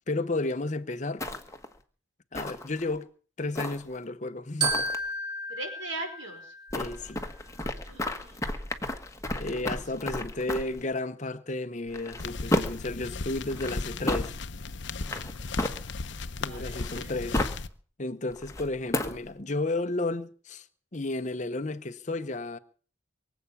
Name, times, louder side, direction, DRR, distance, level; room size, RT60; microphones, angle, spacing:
voice 1, 0.1-1.2 2.3-3.1 3.4-4.9 6.7-7.2 9.4-14.3 16.4-17.5 18.0-20.7 20.9-22.6, left 2 dB, 40° left, 0.9 m, -32 dB
sound 1, 1.2-1.7 2.3-2.9 3.5-4.0 4.6-5.0 6.7-10.8 11.9-12.9 13.5-14.3 15.0-16.1 16.7-17.6 18.3-19.3, left 1 dB, 15° left, 1.3 m, -33 dB
Glockenspiel, 4.6-7.1, right 2 dB, 20° right, 4.7 m, -32 dB
voice 2, 5.5-6.5 7.9-8.4 9.4-9.7 16.5-17.1, right 2 dB, 90° right, 5.1 m, -40 dB
sound 2, 12.2-17.7, left 3 dB, 65° left, 0.8 m, -36 dB
23.5 x 8.2 x 7.1 m
head